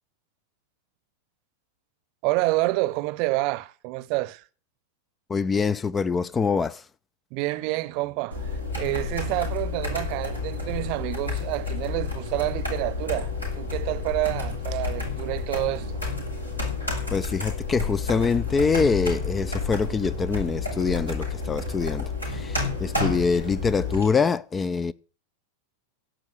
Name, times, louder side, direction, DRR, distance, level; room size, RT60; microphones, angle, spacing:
voice 1, 2.2-4.4 7.3-16.0, right 20 dB, 45° right, 0.9 m, -28 dB
voice 2, 5.3-6.8 17.1-24.9, left 5 dB, 15° left, 0.5 m, -25 dB
sound 1, 8.3-24.1, left 3 dB, 85° left, 6.0 m, -30 dB
16.5 x 5.6 x 9.1 m
figure-of-eight pair, 90°, 0 cm